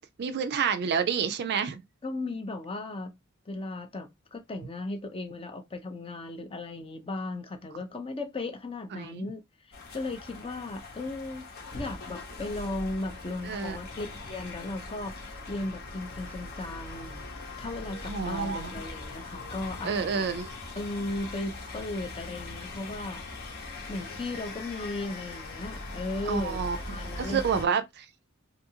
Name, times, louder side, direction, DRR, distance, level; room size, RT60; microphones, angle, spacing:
voice 1, 0.2-1.8 8.9-9.3 13.4-13.8 18.1-18.7 19.8-20.5 26.3-28.0, right 6 dB, 50° right, 0.4 m, -29 dB
voice 2, 2.0-3.1 3.5-9.4 9.7-11.5 11.7-17.3 17.6-20.2 20.7-23.3 23.9-26.6 26.9-27.7, left 2 dB, 25° left, 0.5 m, -36 dB
sound 1, 9.7-27.7, left 2 dB, 50° left, 0.9 m, -41 dB
2.7 x 2.5 x 2.7 m
head